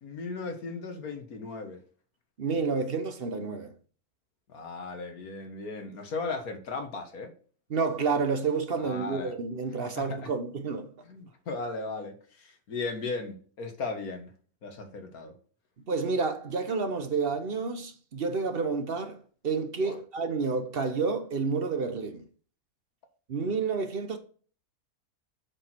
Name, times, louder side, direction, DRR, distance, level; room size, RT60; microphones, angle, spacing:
voice 1, 0.0-1.8 4.5-7.3 8.8-9.4 9.9-10.3 11.0-14.3 14.6-15.3 19.8-20.0, left 3 dB, 65° left, 1.8 m, -37 dB
voice 2, 2.4-3.7 7.7-10.9 15.9-19.2 19.4-22.3 23.3-24.2, right 4 dB, 45° right, 0.8 m, -29 dB
7.5 x 4.6 x 4.4 m
omnidirectional pair, 1.7 m